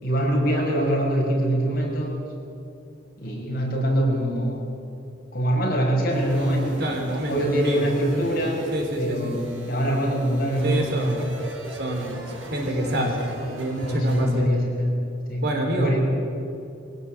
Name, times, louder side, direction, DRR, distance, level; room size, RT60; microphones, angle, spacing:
voice 1, 0.0-2.2 3.2-4.6 5.3-6.8 7.3-8.6 9.0-11.0 12.7-13.1 13.6-14.9 15.3-15.4 15.7-16.0, right 1 dB, 50° left, -1 dB, 5.7 m, -24 dB
sound 1, 6.1-14.4, right 1 dB, 90° right, 5.3 m, -40 dB
voice 2, 6.8-7.9 8.7-9.3 10.6-11.2 11.7-12.2 12.5-13.2 13.5-14.5 15.4-16.0, right 1 dB, 60° right, 2 dB, 4.1 m, -27 dB
23.0 x 16.5 x 8.8 m, 2.7 s
head